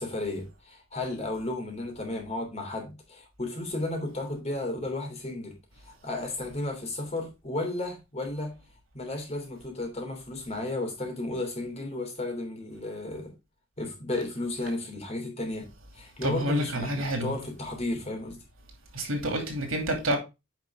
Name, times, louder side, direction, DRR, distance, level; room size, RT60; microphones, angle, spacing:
voice 1, 0.0-5.5 5.8-8.5 8.9-13.3 13.8-15.7 15.9-18.4, left 2 dB, 30° left, 3.1 m, -33 dB
voice 2, 16.2-17.3 18.9-20.2, right 1 dB, 85° right, 2.7 m, -28 dB
9.3 x 5.1 x 3.6 m
head